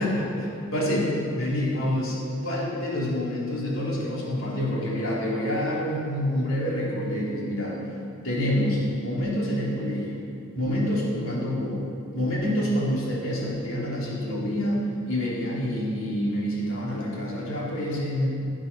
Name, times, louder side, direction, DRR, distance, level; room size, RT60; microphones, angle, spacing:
voice 1, 0.0-7.8 8.2-10.2 10.5-11.8 12.1-14.8 15.1-18.3, left 1 dB, 85° left, -5 dB, 3.2 m, -27 dB
16.5 x 7.3 x 6.2 m, 2.6 s
head